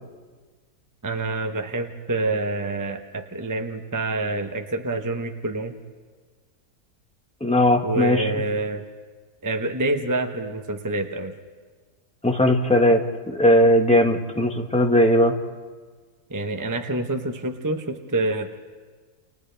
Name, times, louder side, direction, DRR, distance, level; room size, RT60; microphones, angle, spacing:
voice 1, 1.0-5.7 7.8-8.8 9.4-11.3 16.3-18.6, right 2 dB, 15° right, 4 dB, 0.8 m, -27 dB
voice 2, 7.4-8.3 12.2-13.0 13.3-15.3, left 1 dB, 5° left, 2 dB, 1.4 m, -18 dB
30.0 x 29.0 x 3.4 m, 1.5 s
omnidirectional pair, 1.6 m